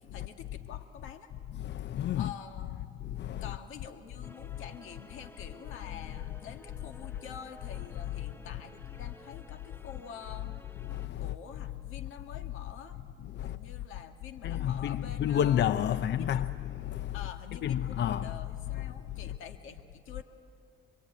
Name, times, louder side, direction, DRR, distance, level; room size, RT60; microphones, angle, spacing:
voice 1, 0.1-1.3 2.2-2.8 3.4-10.5 11.2-13.0 13.4-16.5 17.1-20.2, left 7 dB, 90° left, 1.8 m, -47 dB
voice 2, 1.6-2.3 3.0-3.5 10.8-11.3 13.3-13.6 14.4-17.2 17.6-18.4, left 10 dB, 60° left, 0.6 m, -30 dB
sound 1, 4.2-11.1, left 1 dB, 10° left, 1.1 m, -54 dB
27.0 x 22.5 x 9.2 m
cardioid pair, 90°, 20 cm